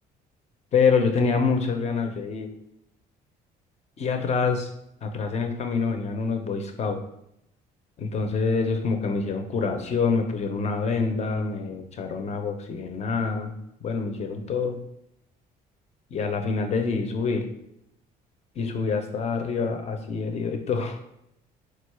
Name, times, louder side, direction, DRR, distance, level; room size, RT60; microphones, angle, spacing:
voice 1, 0.7-2.5 4.0-4.7 5.0-7.0 8.0-13.5 13.8-14.8 16.1-17.4 18.6-21.0, left 5 dB, 40° left, 5 dB, 0.5 m, -26 dB
4.0 x 2.3 x 3.1 m, 0.77 s
cardioid pair, 110°, 17 cm